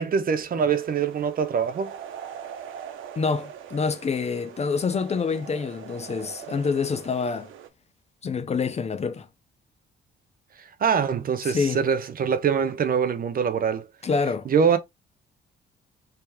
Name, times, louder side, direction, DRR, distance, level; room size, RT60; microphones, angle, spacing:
voice 1, 0.0-2.0 10.8-13.9 14.5-14.8, right 6 dB, 45° right, 0.6 m, -24 dB
sound 1, 0.7-7.7, right 9 dB, 85° right, 0.8 m, -42 dB
voice 2, 3.2-7.5 8.2-9.3 11.4-11.8 14.0-14.5, left 5 dB, 35° left, 0.6 m, -26 dB
3.3 x 2.8 x 3.4 m
cardioid pair, 90°, 20 cm